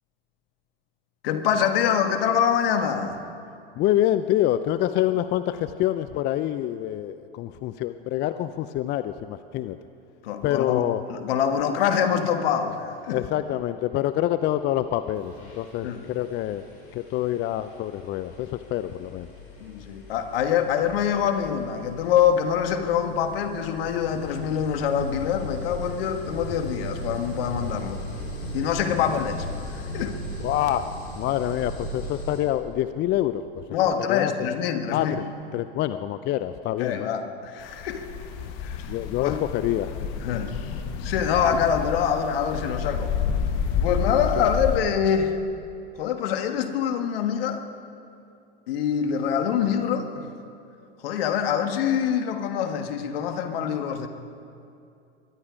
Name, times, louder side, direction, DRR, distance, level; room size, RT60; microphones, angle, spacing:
voice 1, 1.2-3.3 10.2-13.2 15.8-16.0 19.6-28.0 28.5-30.2 33.7-35.2 36.8-38.0 38.6-38.9 39.2-39.4 40.2-40.6 41.0-43.1 43.8-45.4 46.0-47.6 48.7-50.3 51.0-54.1, left 8 dB, 65° left, 7 dB, 1.6 m, -25 dB
voice 2, 3.8-9.8 10.4-11.0 13.1-16.6 16.9-19.3 30.4-30.9 31.2-33.6 34.0-34.3 34.9-35.2 35.5-37.1 38.9-40.0 44.4-44.5, left 13 dB, 35° left, 12 dB, 0.5 m, -26 dB
sound 1, 14.6-14.8 15.1-32.4, equal, 85° left, 4.7 m, -37 dB
sound 2, 37.6-44.8, left 6 dB, 50° left, 1.5 m, -30 dB
22.5 x 11.5 x 5.1 m, 2.6 s
hypercardioid pair, 95°, 31 cm